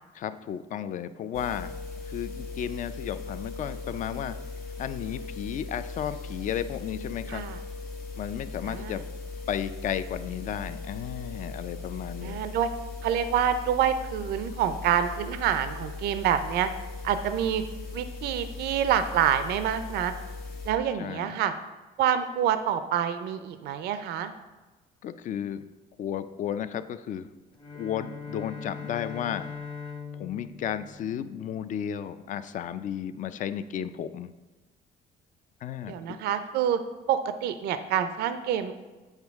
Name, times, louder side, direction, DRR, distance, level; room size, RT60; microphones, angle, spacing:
voice 1, 0.1-1.8 2.0-4.4 4.8-7.4 8.2-9.0 9.5-12.4 21.0-21.4 25.0-25.6 26.0-27.3 27.7-29.5 30.1-34.3 35.6-36.2, left 9 dB, 50° left, 12 dB, 0.4 m, -33 dB
sound 1, 1.3-20.7, left 3 dB, 80° left, 1.7 m, -39 dB
voice 2, 8.7-9.0 12.2-12.7 13.0-16.7 17.0-17.6 17.9-20.1 20.7-21.5 22.0-24.3 35.9-36.8 37.1-38.7, right 9 dB, 75° right, 10 dB, 0.5 m, -27 dB
Bowed string instrument, 27.5-31.9, left 5 dB, 30° left, 0.9 m, -41 dB
8.1 x 4.4 x 3.5 m, 1.2 s
cardioid pair, 110°, 17 cm